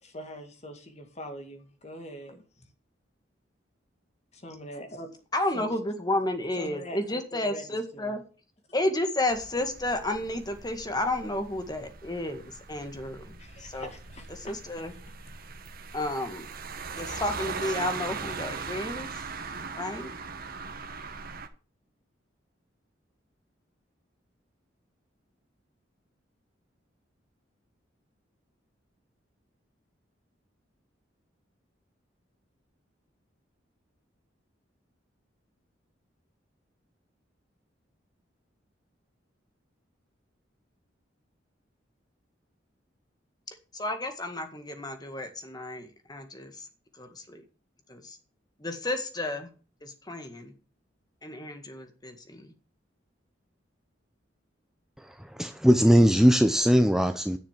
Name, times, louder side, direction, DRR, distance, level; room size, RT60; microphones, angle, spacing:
voice 1, 0.0-2.4 4.3-5.2 5.5-5.8 6.6-8.2 13.4-14.3, equal, 35° left, 2.2 m, -43 dB
voice 2, 5.3-8.2 8.7-12.4 12.7-13.9 14.3-14.9 15.9-16.5 17.0-19.1 19.8-20.1 43.7-46.7 47.0-47.4 47.9-48.2 48.6-49.5 49.8-50.5 51.2-52.5, left 1 dB, 20° left, 1.9 m, -32 dB
sound 1, 9.3-21.5, right 5 dB, 50° right, 1.3 m, -40 dB
voice 3, 55.1-57.4, equal, 5° right, 0.6 m, -20 dB
10.5 x 6.8 x 7.5 m
head